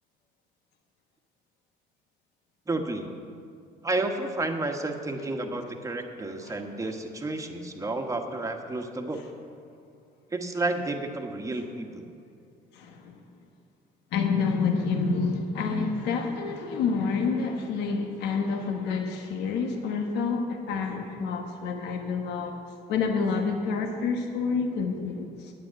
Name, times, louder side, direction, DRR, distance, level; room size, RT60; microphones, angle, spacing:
voice 1, 2.7-3.1 3.8-9.2 10.3-12.1, right 2 dB, 20° right, 4 dB, 1.3 m, -31 dB
voice 2, 12.7-13.2 14.1-22.6 22.9-25.5, left 5 dB, 85° left, 4 dB, 1.2 m, -28 dB
9.5 x 9.0 x 8.7 m, 2.4 s
cardioid pair, 110°, 17 cm